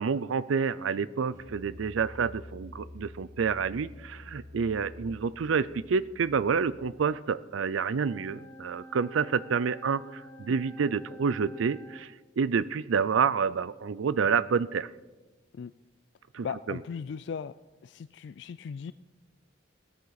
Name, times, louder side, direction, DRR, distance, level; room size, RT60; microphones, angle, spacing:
voice 1, 0.0-14.9 16.3-16.8, right 6 dB, 90° right, 16 dB, 0.5 m, -28 dB
Musical instrument, 1.3-7.0, left 1 dB, 45° right, 4.8 m, -48 dB
sound 1, 8.0-12.1, equal, 10° left, 0.5 m, -48 dB
voice 2, 16.4-17.5 17.8-18.9, left 6 dB, 60° left, 15 dB, 0.3 m, -37 dB
16.5 x 13.0 x 4.0 m, 1.2 s
head